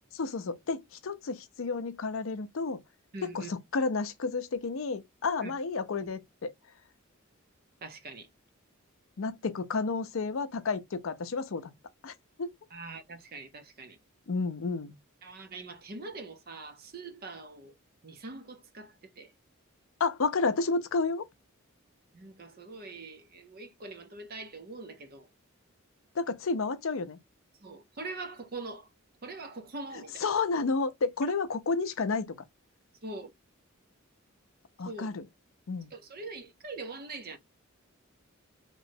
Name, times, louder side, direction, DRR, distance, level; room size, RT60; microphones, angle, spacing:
voice 1, 0.1-2.8 3.2-6.5 9.2-11.7 12.0-12.1 12.4-12.5 14.3-14.9 20.0-21.2 26.2-27.2 30.2-32.3 34.8-35.2 35.7-35.9, left 4 dB, 70° left, 0.5 m, -31 dB
voice 2, 3.1-3.5 5.4-5.5 7.8-8.3 12.7-14.0 15.2-17.7 18.0-19.3 22.1-25.3 27.6-28.9 29.2-30.2 33.0-33.3 34.9-35.1 35.9-37.4, right 3 dB, 45° right, 0.7 m, -43 dB
3.0 x 3.0 x 2.6 m
head